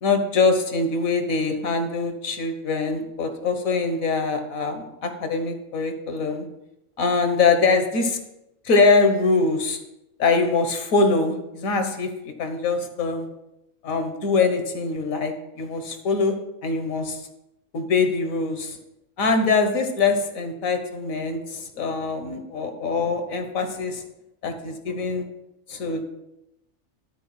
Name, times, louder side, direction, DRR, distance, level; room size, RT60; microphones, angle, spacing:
voice 1, 0.0-6.5 7.0-8.2 8.6-9.8 10.2-12.1 12.4-13.3 13.8-16.3 16.6-17.2 17.7-18.8 19.2-24.0 24.4-25.2 25.7-26.0, left 4 dB, 90° left, 6 dB, 1.6 m, -23 dB
12.5 x 4.5 x 5.8 m, 0.88 s
omnidirectional pair, 1.4 m